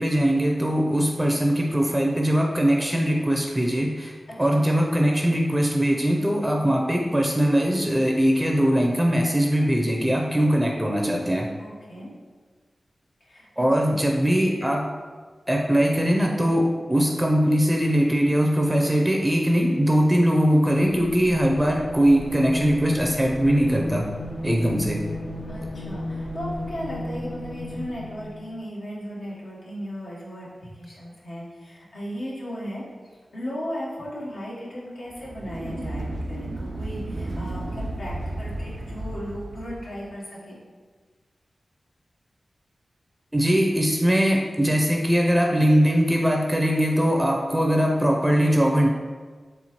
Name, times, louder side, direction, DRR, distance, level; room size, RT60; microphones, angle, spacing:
voice 1, 0.0-4.1 4.4-11.5 13.6-14.9 15.5-24.1 24.4-25.1 43.3-48.9, equal, 10° right, 0 dB, 0.5 m, -21 dB
voice 2, 4.3-4.7 11.6-12.1 13.2-14.0 25.5-32.8 33.3-40.6, equal, 80° left, -6 dB, 1.1 m, -36 dB
sound 1, 20.9-28.5, left 1 dB, 55° left, 0.5 m, -34 dB
sound 2, 35.1-39.9, right 1 dB, 75° right, 0.4 m, -33 dB
4.2 x 3.4 x 3.0 m, 1.5 s
cardioid pair, 40°, 0 cm